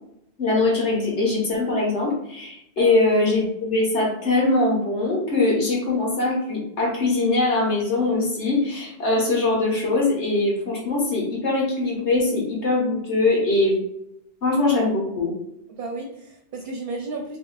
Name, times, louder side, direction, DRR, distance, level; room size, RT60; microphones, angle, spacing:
voice 1, 0.4-13.8 14.4-15.3, left 2 dB, 80° left, -3 dB, 1.7 m, -22 dB
voice 2, 15.7-17.4, right 3 dB, 60° right, 2 dB, 0.7 m, -33 dB
5.0 x 3.0 x 2.4 m, 0.78 s
omnidirectional pair, 1.2 m